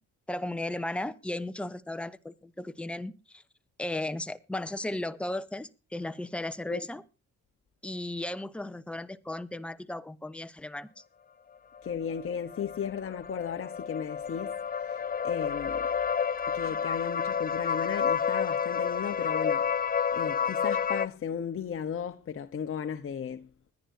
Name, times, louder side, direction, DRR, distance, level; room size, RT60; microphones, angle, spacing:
voice 1, 0.3-3.4 3.8-7.0 7.8-11.0, left 1 dB, 5° left, 0.9 m, -35 dB
sound 1, 11.7-21.1, left 7 dB, 30° left, 0.6 m, -30 dB
voice 2, 11.8-15.9 16.5-23.5, left 7 dB, 45° left, 1.1 m, -35 dB
21.0 x 10.5 x 2.7 m
cardioid pair, 90°, 30 cm